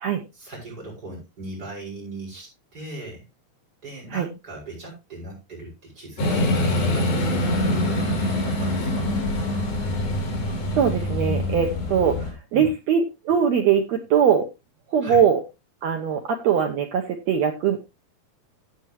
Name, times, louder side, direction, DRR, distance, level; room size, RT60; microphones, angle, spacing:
voice 1, 0.3-3.2 3.8-9.1 12.5-12.7 15.0-15.2, right 2 dB, 25° right, -2 dB, 7.3 m, -38 dB
sound 1, 6.2-12.3, left 1 dB, 75° left, 5.5 m, -24 dB
voice 2, 10.7-14.5 14.9-15.4 15.8-17.8, right 7 dB, 75° right, 4 dB, 1.6 m, -21 dB
14.0 x 8.2 x 3.0 m, 0.26 s
omnidirectional pair, 4.2 m